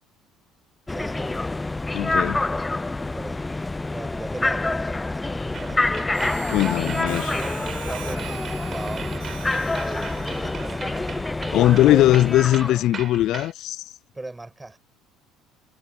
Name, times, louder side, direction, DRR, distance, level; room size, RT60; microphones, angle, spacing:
sound 1, 0.9-12.9, left 2 dB, 15° left, 0.7 m, -27 dB
voice 1, 0.9-1.5 3.0-6.1 6.7-7.6 7.9-9.3 9.7-11.2 11.8-12.1 14.1-14.8, right 2 dB, 15° right, 6.7 m, -38 dB
voice 2, 1.9-2.4 6.5-7.3 11.5-13.8, left 14 dB, 65° left, 0.4 m, -19 dB
sound 2, 5.5-13.5, right 7 dB, 40° right, 7.0 m, -38 dB
Harmonica, 6.1-11.3, right 31 dB, 85° right, 7.8 m, -43 dB
supercardioid pair, 80°, 0 cm